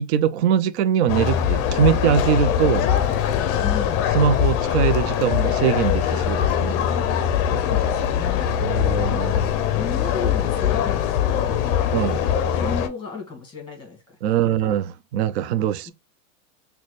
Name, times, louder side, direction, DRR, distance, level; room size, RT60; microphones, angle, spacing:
voice 1, 0.0-2.9 4.1-6.8 8.6-9.3 11.9-12.2 14.2-15.9, right 9 dB, 55° right, 0.5 m, -22 dB
sound 1, 1.1-12.9, left 9 dB, 40° left, 0.5 m, -22 dB
voice 2, 3.6-4.0 7.4-8.5 9.1-12.2 12.5-14.2 14.6-14.8 15.8-15.9, left 4 dB, 10° left, 1.7 m, -35 dB
3.9 x 2.3 x 3.2 m
hypercardioid pair, 110°, 39 cm